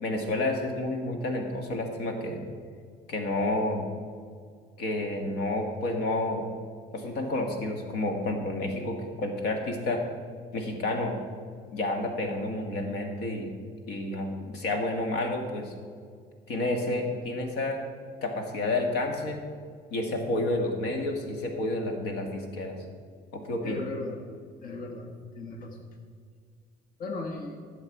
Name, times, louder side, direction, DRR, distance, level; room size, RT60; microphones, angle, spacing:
voice 1, 0.0-2.4 3.1-3.9 4.8-6.4 6.9-10.0 10.5-11.2 11.7-13.5 13.9-15.7 16.5-17.8 18.2-19.4 19.9-22.8 23.3-23.8, left 2 dB, 80° left, 3 dB, 1.7 m, -30 dB
voice 2, 23.6-24.2 24.6-25.8 27.0-27.7, left 2 dB, 60° left, 3 dB, 1.5 m, -37 dB
15.0 x 7.1 x 4.7 m, 2.1 s
cardioid pair, 110°, 17 cm